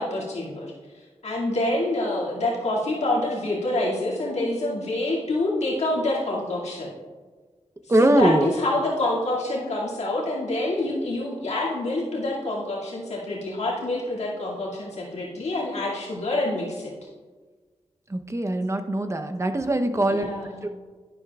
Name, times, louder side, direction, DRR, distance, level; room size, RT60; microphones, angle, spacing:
voice 1, 0.0-6.9 8.0-16.9 20.0-20.6, left 2 dB, 80° left, -5 dB, 2.3 m, -27 dB
voice 2, 7.9-8.5 18.1-20.3 20.6-20.7, right 1 dB, 25° right, 6 dB, 0.8 m, -22 dB
11.0 x 9.8 x 2.4 m, 1.4 s
cardioid pair, 60°, 11 cm